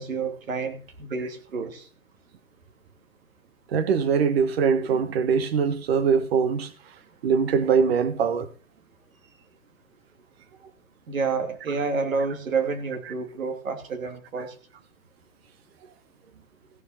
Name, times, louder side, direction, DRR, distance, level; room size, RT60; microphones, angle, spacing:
voice 1, 0.0-1.8 11.1-14.5, right 4 dB, 70° right, 3.0 m, -29 dB
voice 2, 3.7-6.7 7.2-8.5, right 6 dB, 45° right, 1.7 m, -22 dB
15.5 x 6.3 x 5.9 m
hypercardioid pair, 135°, 42 cm